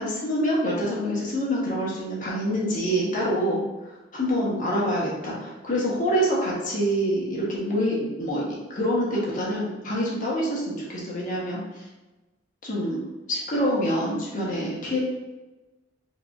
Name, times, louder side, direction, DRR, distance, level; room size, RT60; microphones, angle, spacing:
voice 1, 0.0-3.6 4.1-11.8 12.6-13.0 13.3-15.0, equal, 45° left, -5 dB, 1.1 m, -26 dB
4.6 x 3.0 x 2.5 m, 1.1 s
head